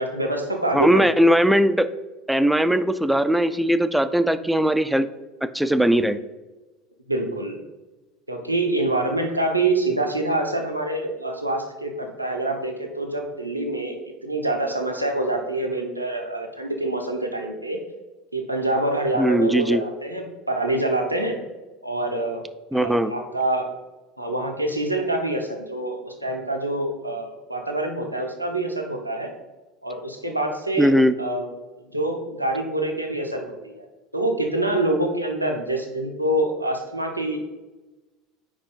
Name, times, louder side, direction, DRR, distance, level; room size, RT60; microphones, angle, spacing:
voice 1, 0.0-1.1 7.1-7.6 8.3-17.8 18.3-21.4 21.8-22.4 22.7-23.7 24.2-29.3 29.8-31.5 31.9-33.9 34.1-37.5, right 2 dB, 90° right, 2 dB, 0.8 m, -26 dB
voice 2, 0.7-1.9 2.3-5.1 5.4-6.2 19.2-19.8 22.7-23.1 30.8-31.1, equal, 5° right, 11 dB, 0.4 m, -19 dB
5.1 x 4.8 x 5.2 m, 1.1 s
figure-of-eight pair, 70°, 0 cm